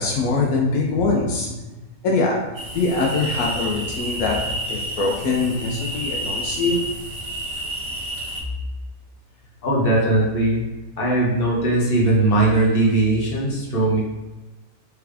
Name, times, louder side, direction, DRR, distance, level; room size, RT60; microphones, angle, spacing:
voice 1, 0.0-1.5 2.0-2.4 2.7-6.8, left 3 dB, 80° left, -1 dB, 1.1 m, -23 dB
sound 1, 2.5-8.4, right 1 dB, 45° right, 0.5 m, -30 dB
voice 2, 9.6-10.6 11.0-14.0, right 2 dB, 45° left, -4 dB, 1.1 m, -19 dB
3.5 x 3.4 x 3.4 m, 1.1 s
omnidirectional pair, 1.5 m